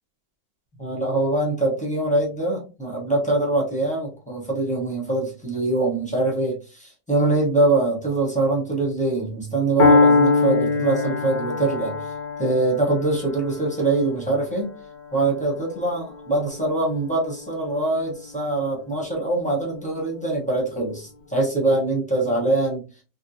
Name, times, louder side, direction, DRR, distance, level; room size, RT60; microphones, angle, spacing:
voice 1, 0.8-12.1 12.4-14.7 15.1-22.8, right 2 dB, 10° left, -3 dB, 0.5 m, -23 dB
Piano, 9.8-17.7, left 3 dB, 80° left, 0.6 m, -23 dB
3.6 x 2.2 x 2.6 m, 0.34 s
omnidirectional pair, 1.9 m